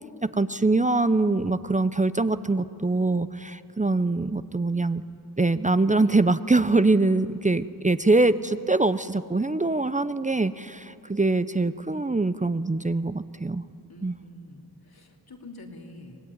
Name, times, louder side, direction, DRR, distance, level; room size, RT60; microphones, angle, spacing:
voice 1, 0.2-5.0 5.4-13.6 14.0-14.1, right 2 dB, 20° right, 13 dB, 0.7 m, -23 dB
voice 2, 13.9-16.2, left 2 dB, 70° left, 1 dB, 3.2 m, -46 dB
25.0 x 18.5 x 9.6 m, 2.6 s
wide cardioid pair, 60°, 38 cm